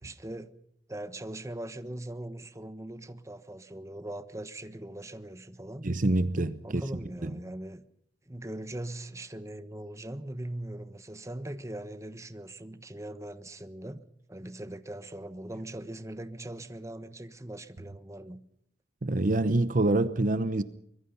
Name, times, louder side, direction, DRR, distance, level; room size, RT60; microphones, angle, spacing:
voice 1, 0.0-0.5 0.9-5.9 6.6-7.8 8.3-14.0 14.3-18.4, right 1 dB, 15° right, 1.3 m, -40 dB
voice 2, 5.8-6.8 7.2-7.3 19.0-20.6, right 2 dB, 50° right, 0.9 m, -26 dB
24.5 x 22.5 x 5.7 m
head